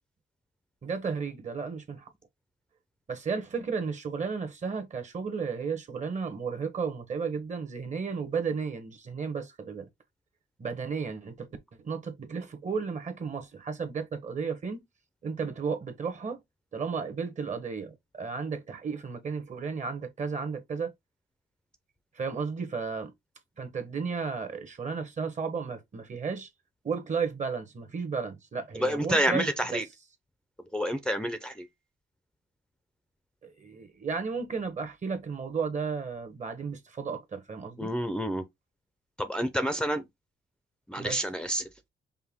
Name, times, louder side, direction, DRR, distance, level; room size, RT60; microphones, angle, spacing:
voice 1, 0.8-2.1 3.1-9.9 10.6-11.5 11.8-14.8 15.2-16.4 16.7-20.9 22.2-23.1 23.6-26.5 26.8-29.8 33.4-37.9 41.0-41.2, right 5 dB, 35° right, 1.1 m, -33 dB
voice 2, 28.8-29.8 30.7-31.7 37.8-38.4 39.2-40.0 40.9-41.9, equal, 5° left, 0.6 m, -29 dB
5.5 x 2.2 x 3.6 m
cardioid pair, 90°, 20 cm